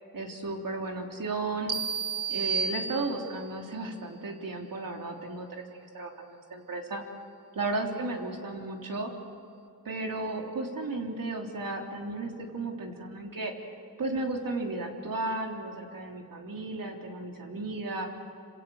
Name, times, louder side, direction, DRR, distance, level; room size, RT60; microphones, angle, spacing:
voice 1, 0.1-1.8 2.3-7.0 7.6-9.1 9.9-13.5 14.0-18.0, right 2 dB, 60° right, 1 dB, 3.4 m, -34 dB
sound 1, 1.7-3.5, right 6 dB, 80° right, 1.9 m, -31 dB
27.0 x 26.5 x 7.8 m, 2.4 s
wide cardioid pair, 150°, 38 cm